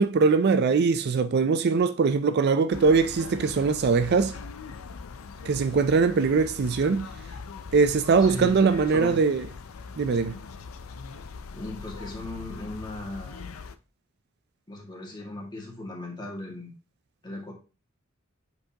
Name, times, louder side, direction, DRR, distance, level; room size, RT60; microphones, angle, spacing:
voice 1, 0.0-4.4 5.4-7.1 7.7-9.5 10.0-10.4, right 4 dB, 50° right, 0.4 m, -22 dB
sound 1, 2.7-13.8, left 5 dB, 85° left, 0.5 m, -41 dB
voice 2, 8.2-9.2 11.5-13.7 14.7-16.7 17.2-17.5, left 2 dB, 20° left, 1.9 m, -37 dB
7.8 x 4.6 x 2.8 m
head